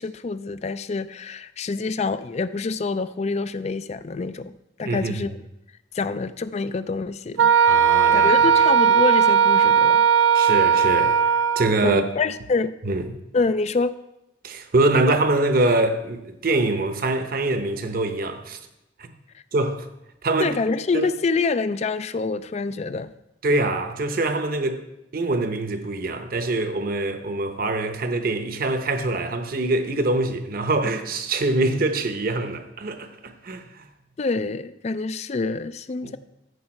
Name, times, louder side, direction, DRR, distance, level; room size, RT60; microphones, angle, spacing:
voice 1, 0.0-4.5 4.8-5.3 5.9-7.5 8.1-10.0 11.8-12.7 13.3-13.9 20.4-23.1 34.2-36.2, left 4 dB, 35° left, 0.4 m, -26 dB
voice 2, 4.8-5.3 7.7-8.3 10.3-11.2 11.5-12.0 12.8-13.2 14.4-18.6 19.0-19.1 19.5-19.9 20.2-20.6 20.9-21.1 23.4-24.8 25.1-33.9 36.0-36.2, right 2 dB, 50° right, 0.9 m, -24 dB
Wind instrument woodwind instrument, 7.4-11.8, right 7 dB, 85° right, 0.4 m, -17 dB
14.5 x 5.5 x 4.3 m
head